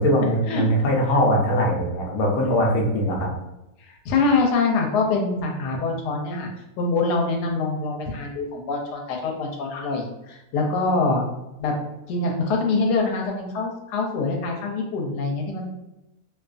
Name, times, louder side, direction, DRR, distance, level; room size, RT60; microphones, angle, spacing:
voice 1, 0.0-3.3, equal, 65° left, -1 dB, 0.9 m, -21 dB
voice 2, 3.9-6.5 6.8-11.2 11.6-11.8 12.1-15.7, left 3 dB, 90° left, 1 dB, 1.1 m, -24 dB
2.6 x 2.3 x 2.4 m, 0.94 s
omnidirectional pair, 1.7 m